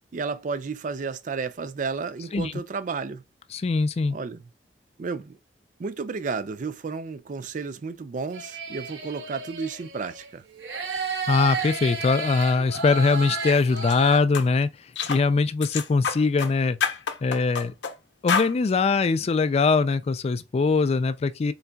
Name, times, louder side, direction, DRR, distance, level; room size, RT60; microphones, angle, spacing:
voice 1, 0.1-3.2 4.1-4.4 5.0-5.4 5.8-10.4, right 4 dB, 45° right, 0.4 m, -32 dB
voice 2, 3.5-4.2 11.3-14.7 15.0-16.8 17.2-17.7 18.2-21.5, left 4 dB, 35° left, 0.3 m, -22 dB
sound 1, 8.3-10.3 10.6-14.2, right 4 dB, 70° right, 0.8 m, -32 dB
sound 2, 13.8-14.0 14.3-14.5 15.0-15.2 15.6-16.5 16.8-17.9 18.3-18.5, left 6 dB, 80° left, 0.6 m, -27 dB
3.9 x 3.4 x 2.2 m
head